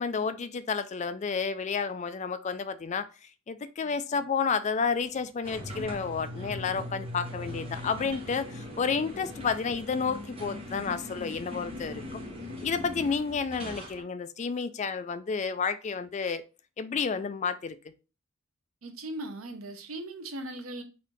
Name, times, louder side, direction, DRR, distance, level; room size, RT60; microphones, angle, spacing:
voice 1, 0.0-3.1 3.5-12.2 12.6-16.4 16.8-17.8, left 5 dB, 35° left, 0.3 m, -31 dB
sound 1, 5.4-14.0, left 1 dB, 30° right, 1.1 m, -40 dB
voice 2, 18.8-20.8, right 1 dB, 85° right, 0.8 m, -38 dB
4.1 x 2.7 x 4.5 m
head